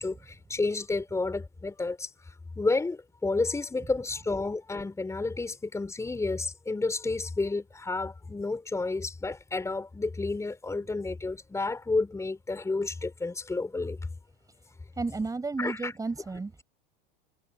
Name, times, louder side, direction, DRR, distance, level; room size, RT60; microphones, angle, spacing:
voice 1, 0.0-14.0 15.6-15.9, left 3 dB, 10° left, 5.2 m, -31 dB
voice 2, 15.0-16.6, right 3 dB, 10° right, 6.2 m, -32 dB
supercardioid pair, 125°, 29 cm